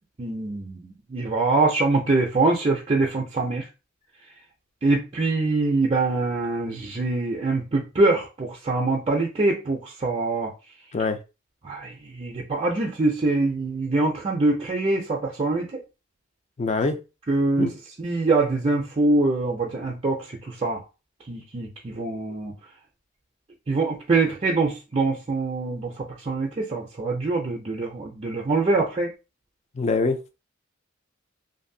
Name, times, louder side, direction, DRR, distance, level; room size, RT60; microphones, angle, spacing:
voice 1, 0.2-3.6 4.8-10.5 11.6-15.8 17.3-17.7 18.0-20.8 21.3-22.5 23.7-29.1, right 3 dB, 30° right, 0.4 m, -24 dB
voice 2, 16.6-17.0 17.6-17.7 29.7-30.2, left 3 dB, 30° left, 0.4 m, -23 dB
2.6 x 2.5 x 2.6 m
head